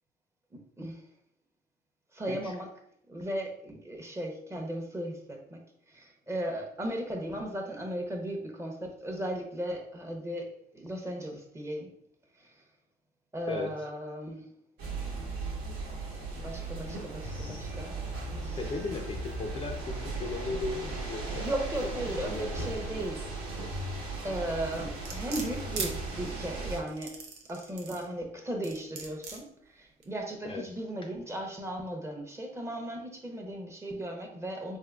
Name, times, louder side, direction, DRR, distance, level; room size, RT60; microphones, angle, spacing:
voice 1, 2.1-2.7 3.1-5.6 5.9-11.9 12.4-12.5 13.3-14.5 16.4-18.0 18.4-18.6 21.4-23.2 24.2-34.8, right 1 dB, 15° right, 2 dB, 0.7 m, -36 dB
sound 1, 14.8-26.8, right 3 dB, 70° right, 1.1 m, -37 dB
voice 2, 17.3-17.8 18.6-21.5 21.8-21.9 22.2-22.7 30.4-30.6, left 3 dB, 30° left, 2 dB, 0.4 m, -37 dB
sound 2, 25.1-25.9 26.9-28.1 28.6-29.4 30.0-30.1, right 5 dB, 85° right, 0.6 m, -38 dB
3.6 x 2.8 x 2.3 m, 0.66 s
cardioid pair, 110°, 17 cm